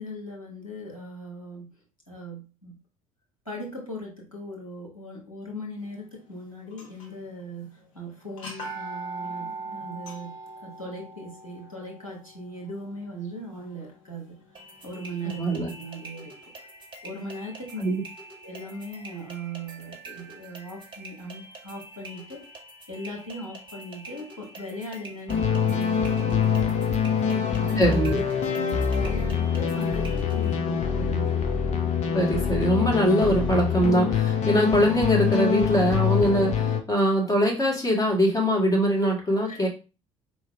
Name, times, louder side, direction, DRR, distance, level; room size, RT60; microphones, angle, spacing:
voice 1, 0.0-1.7 2.1-2.8 3.4-10.4 10.6-14.4 14.8-16.5 17.0-17.8 18.4-22.5 22.9-26.7 27.2-28.0 28.5-31.3 39.5-39.6, right 1 dB, 90° left, 1 dB, 1.3 m, -38 dB
sound 1, 6.7-7.3 7.6-7.7 8.3-14.2, right 3 dB, 70° left, 1.3 m, -40 dB
sound 2, 14.6-30.6, right 2 dB, 30° right, 1.4 m, -46 dB
voice 2, 15.4-15.7 17.8-18.0 27.8-28.2 32.1-39.7, equal, 20° left, -2 dB, 2.0 m, -22 dB
sound 3, 25.3-36.8, left 7 dB, 45° left, 0.8 m, -25 dB
4.4 x 3.1 x 3.4 m, 0.32 s
figure-of-eight pair, 55°, 17 cm